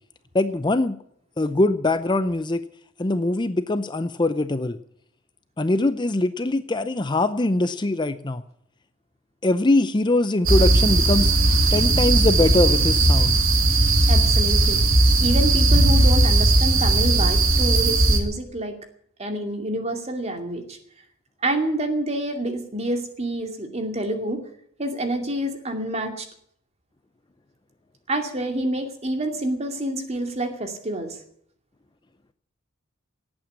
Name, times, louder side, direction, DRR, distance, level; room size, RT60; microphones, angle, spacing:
voice 1, 0.3-1.0 1.4-2.6 3.0-4.8 5.6-8.4 9.4-11.3 11.7-13.4, left 2 dB, 25° left, 12 dB, 0.6 m, -22 dB
sound 1, 10.5-18.2, right 2 dB, 90° right, 2.9 m, -18 dB
voice 2, 14.1-14.8 15.2-18.7 19.2-20.8 21.4-24.4 24.8-26.3 28.1-31.2, right 1 dB, 35° right, 5 dB, 2.4 m, -27 dB
18.0 x 8.9 x 8.3 m, 0.67 s
head